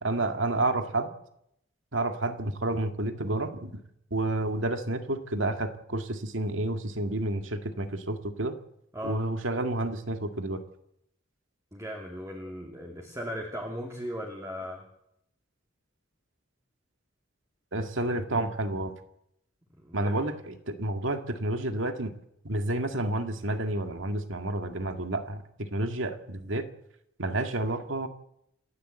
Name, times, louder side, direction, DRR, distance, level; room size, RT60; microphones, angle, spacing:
voice 1, 0.0-1.1 1.9-3.7 4.1-8.6 9.0-10.6 17.7-18.9 19.9-22.1 22.4-26.7 27.2-28.1, right 2 dB, 80° right, 6 dB, 2.1 m, -30 dB
voice 2, 8.9-9.2 11.7-14.8 19.8-20.3, equal, 15° right, 0 dB, 2.7 m, -37 dB
28.0 x 12.0 x 8.1 m, 0.77 s
head